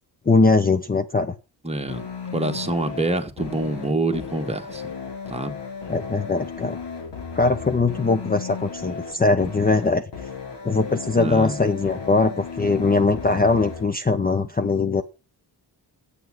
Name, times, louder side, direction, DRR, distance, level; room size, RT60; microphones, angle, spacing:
voice 1, 0.3-1.3 5.9-6.8 7.3-10.0 10.6-15.0, left 3 dB, 20° left, 0.7 m, -21 dB
voice 2, 1.6-2.1 2.3-4.8 5.3-5.5 11.2-11.6, right 2 dB, 15° right, 1.6 m, -26 dB
sound 1, 1.9-13.9, left 5 dB, 85° left, 2.8 m, -35 dB
9.3 x 8.5 x 6.2 m
wide cardioid pair, 105°, 41 cm